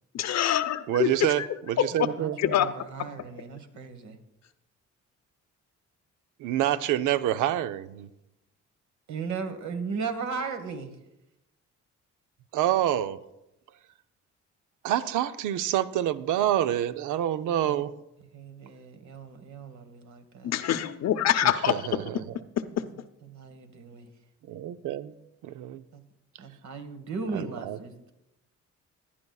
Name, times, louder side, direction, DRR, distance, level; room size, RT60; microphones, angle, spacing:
voice 1, 0.1-1.1 1.4-1.5 1.8-1.9 2.4-2.7 20.4-21.7, left 11 dB, 60° left, 11 dB, 0.7 m, -24 dB
voice 2, 0.9-2.4 6.4-8.1 12.5-13.2 14.8-17.9 21.4-22.2 24.5-25.1 25.4-25.8 27.3-27.8, right 12 dB, 85° right, 13 dB, 0.6 m, -27 dB
voice 3, 2.1-4.2 9.1-10.9 17.6-17.8 18.3-20.6 23.2-24.1 25.9-26.0 26.4-28.1, right 5 dB, 65° right, 8 dB, 1.4 m, -37 dB
18.0 x 11.0 x 2.3 m, 0.89 s
cardioid pair, 90°, 30 cm